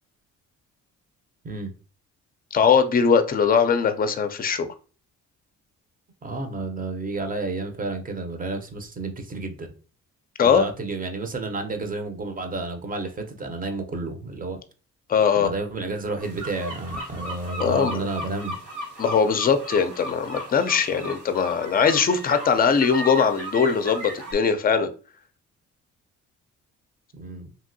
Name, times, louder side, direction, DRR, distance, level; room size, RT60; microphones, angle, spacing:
voice 1, 2.5-4.7 10.4-10.7 15.1-15.5 17.6-18.1 19.0-24.9, left 6 dB, 30° left, 0.4 m, -21 dB
voice 2, 6.2-9.7 10.4-14.6 15.4-18.6 27.1-27.5, right 3 dB, 30° right, 0.6 m, -31 dB
sound 1, 16.2-24.3, right 1 dB, 90° right, 1.7 m, -36 dB
2.9 x 2.6 x 2.6 m
cardioid pair, 90°, 30 cm